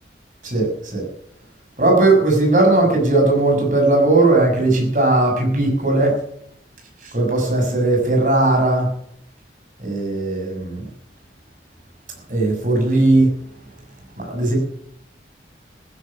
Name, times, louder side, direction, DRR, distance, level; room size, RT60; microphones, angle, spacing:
voice 1, 0.4-1.0 1.8-6.2 7.0-8.9 9.8-10.8 12.3-13.3 14.2-14.6, right 2 dB, 45° right, 2 dB, 6.1 m, -17 dB
15.0 x 10.0 x 7.0 m, 0.70 s
head